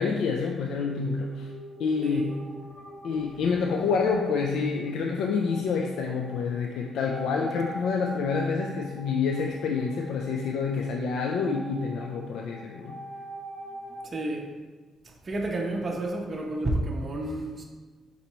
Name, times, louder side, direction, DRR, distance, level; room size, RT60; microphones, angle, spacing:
voice 1, 0.0-1.5 1.8-2.4 3.0-13.0, left 5 dB, 80° left, 1 dB, 0.3 m, -28 dB
sound 1, 0.9-14.1, right 1 dB, 55° left, 0.8 m, -44 dB
voice 2, 2.0-2.3 14.0-14.5 15.0-17.6, right 1 dB, 35° right, 0 dB, 0.5 m, -30 dB
4.2 x 3.9 x 3.0 m, 1.4 s
cardioid pair, 90°, 0 cm